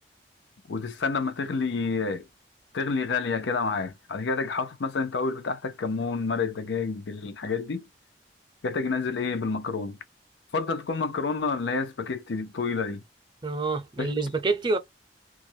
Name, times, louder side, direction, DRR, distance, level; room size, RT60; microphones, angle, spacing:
voice 1, 0.7-2.3 2.7-7.9 8.6-10.0 10.5-13.0 14.0-14.1, left 4 dB, 85° left, 0.5 m, -29 dB
voice 2, 13.4-14.8, right 3 dB, 25° right, 0.5 m, -27 dB
2.3 x 2.1 x 2.6 m
head